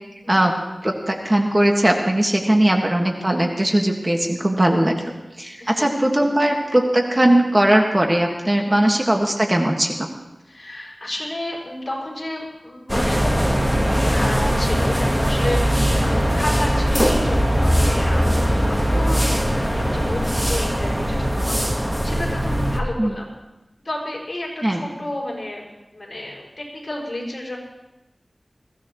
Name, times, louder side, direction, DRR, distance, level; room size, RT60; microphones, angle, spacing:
voice 1, 0.8-10.1 23.0-23.1 24.6-24.8, right 1 dB, 30° right, 1 dB, 1.7 m, -19 dB
voice 2, 2.4-2.8 5.0-5.1 5.6-6.0 8.7-8.9 10.5-23.3 23.8-27.6, left 1 dB, 45° left, -2 dB, 5.8 m, -32 dB
sound 1, 12.9-22.8, equal, 5° right, 1.4 m, -20 dB
22.0 x 16.0 x 3.1 m, 1.0 s
wide cardioid pair, 60°, 0 cm